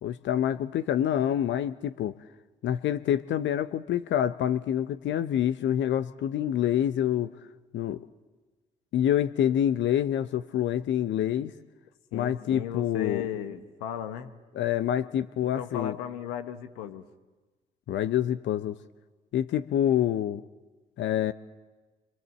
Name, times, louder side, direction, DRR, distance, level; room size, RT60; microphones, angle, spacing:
voice 1, 0.0-2.1 2.6-7.3 7.7-8.0 8.9-11.5 12.1-13.2 14.5-16.0 17.9-18.8 19.3-20.4 21.0-21.3, left 10 dB, 60° left, 12 dB, 0.8 m, -27 dB
voice 2, 12.1-14.4 15.4-17.1, left 10 dB, 80° left, 8 dB, 1.2 m, -36 dB
26.5 x 25.0 x 7.7 m, 1.2 s
hypercardioid pair, 45°, 21 cm